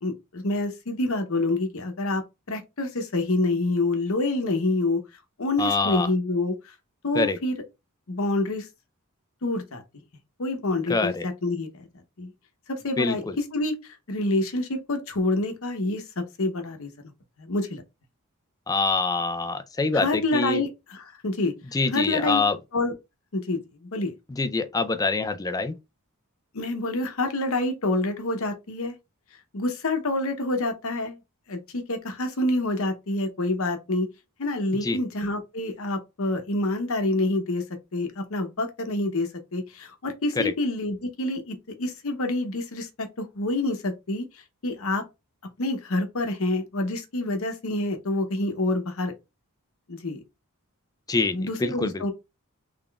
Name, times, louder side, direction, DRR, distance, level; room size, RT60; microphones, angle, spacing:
voice 1, 0.0-2.2 2.5-5.0 5.4-6.5 7.0-7.6 8.1-8.7 9.4-9.8 10.4-11.9 12.2-12.3 12.7-13.2 13.5-16.9 17.4-17.8 19.9-21.5 21.9-22.4 22.7-22.9 23.3-24.1 26.5-28.9 29.5-31.2 31.5-34.1 34.4-37.6 37.9-45.0 45.6-49.1 49.9-50.2 51.3-52.1, left 2 dB, 70° left, 0.9 m, -27 dB
voice 2, 5.6-6.1 7.1-7.4 10.9-11.3 13.0-13.4 18.7-20.6 21.7-22.6 24.3-25.7 34.8-35.0 40.4-40.5 51.1-52.0, left 3 dB, 15° left, 0.4 m, -25 dB
3.8 x 3.5 x 2.3 m
head